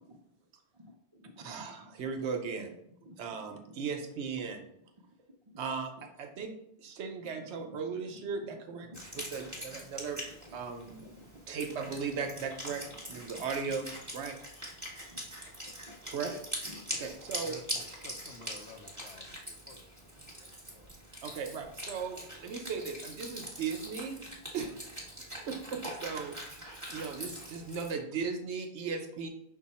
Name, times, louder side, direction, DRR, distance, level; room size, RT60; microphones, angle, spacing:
voice 1, 0.7-1.9 3.0-3.2 3.5-3.8 5.5-5.6 6.0-6.1 7.4-7.8 8.4-8.6 8.8-9.3 9.7-9.8 10.3-10.6 11.0-11.4 13.2-13.4 14.8-15.2 16.6-16.8, equal, 45° right, 0 dB, 0.4 m, -53 dB
voice 2, 1.4-2.7 3.2-4.7 5.6-6.5 6.8-8.9 9.1-10.2 10.5-11.1 11.5-12.8 13.1-14.4 16.1-16.3 16.9-17.5 21.2-24.2 24.5-24.9 25.5-26.3 26.9-29.3, right 5 dB, 80° right, 5 dB, 1.0 m, -37 dB
Wind instrument woodwind instrument, 8.9-27.9, equal, 15° right, 1.3 m, -43 dB
voice 3, 17.4-20.1 20.4-21.1, left 3 dB, 75° left, 6 dB, 0.9 m, -52 dB
5.6 x 2.2 x 4.1 m, 0.77 s
omnidirectional pair, 1.1 m